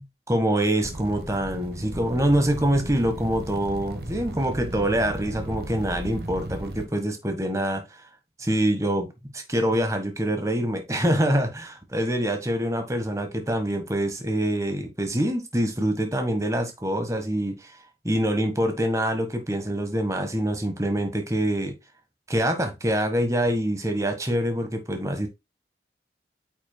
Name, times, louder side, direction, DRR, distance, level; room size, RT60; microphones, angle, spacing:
voice 1, 0.3-7.8 8.4-9.1 9.3-17.8 18.0-21.7 22.3-25.3, right 1 dB, 20° right, 1.4 m, -25 dB
sound 1, 0.8-6.8, right 1 dB, 65° right, 1.2 m, -35 dB
8.9 x 6.0 x 2.2 m
head